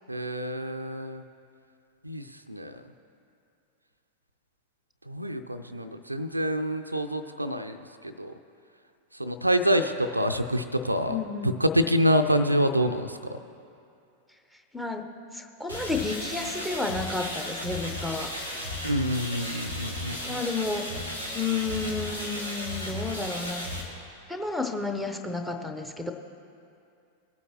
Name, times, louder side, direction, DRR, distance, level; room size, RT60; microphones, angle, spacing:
voice 1, 0.1-1.2 2.0-2.8 5.1-7.8 8.0-8.3 9.2-13.4 18.8-20.4, equal, 85° right, 8 dB, 0.4 m, -27 dB
voice 2, 11.1-11.6 14.7-15.1 15.3-18.3 20.2-20.9 21.3-23.6 24.3-26.1, left 3 dB, 5° left, 6 dB, 0.8 m, -31 dB
sound 1, 15.7-23.8, left 1 dB, 85° left, 1.7 m, -35 dB
18.5 x 8.4 x 3.0 m, 2.5 s
figure-of-eight pair, 90°, 0 cm